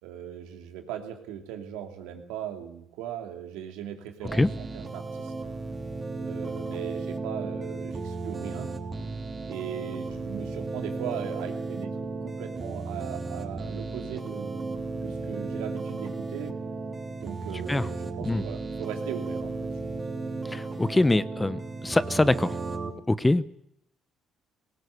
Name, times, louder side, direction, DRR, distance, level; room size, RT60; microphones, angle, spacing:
voice 1, 0.0-5.3 6.2-8.7 9.5-12.0 12.2-16.5 17.2-20.0, right 9 dB, 85° right, 5 dB, 2.8 m, -39 dB
sound 1, 4.3-22.9, right 3 dB, 30° right, 3.9 m, -34 dB
voice 2, 20.5-22.6 23.1-23.5, left 2 dB, 15° left, 16 dB, 0.9 m, -24 dB
18.5 x 18.0 x 8.4 m, 0.76 s
supercardioid pair, 65°, 0 cm